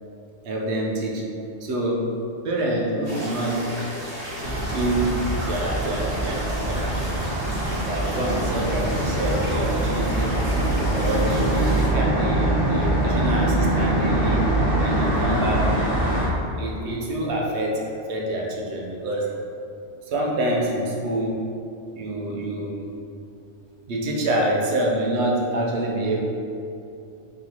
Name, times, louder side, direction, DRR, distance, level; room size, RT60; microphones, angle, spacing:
voice 1, 0.4-1.3 1.6-3.9 4.6-7.1 7.8-10.4 10.9-14.5 14.8-16.0 16.6-19.4 20.0-21.5 21.9-22.9 23.9-26.2, right 1 dB, 75° right, -1 dB, 0.9 m, -26 dB
sound 1, 3.0-11.9, equal, 55° right, 1.5 m, -34 dB
sound 2, 4.4-16.3, right 1 dB, 20° right, 0.9 m, -23 dB
4.0 x 3.6 x 2.9 m, 2.7 s
omnidirectional pair, 1.2 m